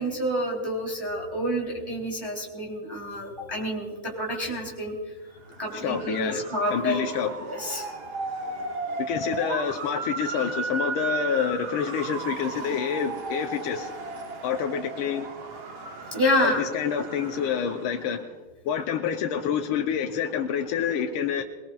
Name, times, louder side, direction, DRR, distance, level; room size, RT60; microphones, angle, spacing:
voice 1, 0.0-4.9 5.6-7.0 7.4-7.9 16.1-16.7, equal, 10° right, -3 dB, 3.0 m, -28 dB
Motor vehicle (road) / Siren, 5.4-18.1, right 4 dB, 65° right, 2.5 m, -35 dB
voice 2, 5.7-7.3 9.0-13.9 14.4-15.3 16.4-18.4 18.6-21.4, left 8 dB, 80° left, 2 dB, 1.6 m, -28 dB
27.0 x 19.0 x 2.4 m, 1.4 s
omnidirectional pair, 2.4 m